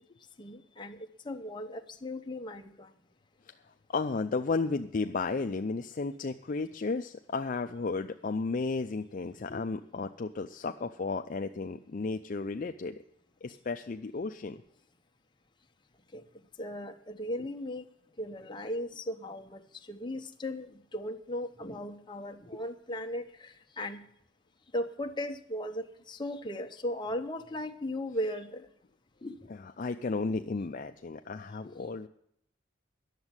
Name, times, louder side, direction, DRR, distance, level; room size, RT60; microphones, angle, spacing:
voice 1, 0.4-1.0 1.2-2.9 16.1-16.2 16.6-17.8 18.2-19.6 19.9-24.0 24.7-28.7 29.2-29.4 30.3-30.4 31.6-31.7, left 1 dB, 25° left, 5 dB, 0.8 m, -37 dB
voice 2, 3.9-13.0 13.4-14.6 22.5-22.6 29.5-32.1, left 4 dB, 40° left, 6 dB, 0.4 m, -33 dB
10.5 x 7.2 x 9.6 m, 0.73 s
head